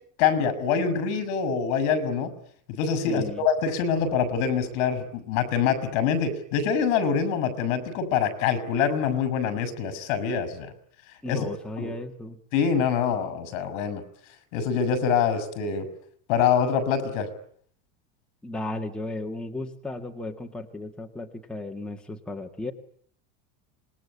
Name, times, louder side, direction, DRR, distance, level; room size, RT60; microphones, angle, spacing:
voice 1, 0.2-2.3 2.7-10.7 11.3-11.5 11.8-11.9 12.5-14.0 14.5-15.9 16.3-17.3, left 7 dB, 60° left, 15 dB, 5.9 m, -25 dB
voice 2, 3.1-3.4 11.2-12.4 18.4-22.7, left 2 dB, ahead, 2 dB, 1.8 m, -35 dB
26.5 x 21.5 x 9.8 m, 0.62 s
cardioid pair, 160°, 40 cm